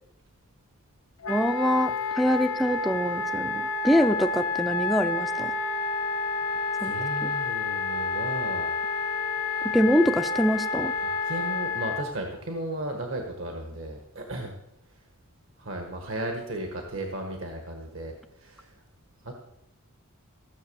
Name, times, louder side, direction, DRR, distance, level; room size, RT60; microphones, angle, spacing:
Wind instrument woodwind instrument, 1.2-12.1, left 4 dB, 75° left, 1.0 m, -29 dB
voice 1, 1.3-5.5 6.8-6.9 7.2-7.3 9.6-10.9, equal, ahead, 10 dB, 0.6 m, -24 dB
voice 2, 6.8-8.7 9.0-9.2 11.0-14.5 15.6-18.8 19.2-19.3, right 1 dB, 60° right, 3 dB, 1.5 m, -35 dB
15.5 x 7.1 x 7.1 m, 0.84 s
head